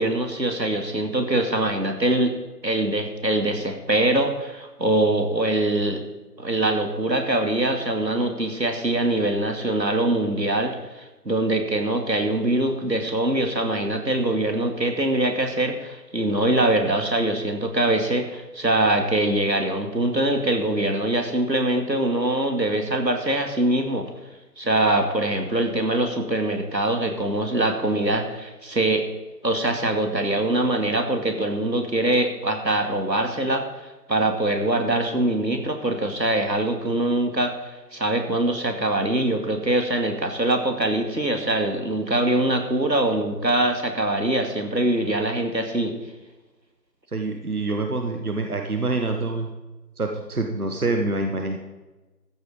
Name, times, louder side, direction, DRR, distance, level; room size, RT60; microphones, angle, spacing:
voice 1, 0.0-2.3 2.6-6.0 6.4-24.1 24.6-29.0 29.4-33.6 34.1-37.5 37.9-45.9, right 1 dB, 90° right, 4 dB, 2.6 m, -23 dB
voice 2, 47.1-49.5 50.0-51.6, right 3 dB, 60° right, 4 dB, 1.6 m, -26 dB
14.5 x 8.3 x 5.4 m, 1.1 s
figure-of-eight pair, 160°, 49 cm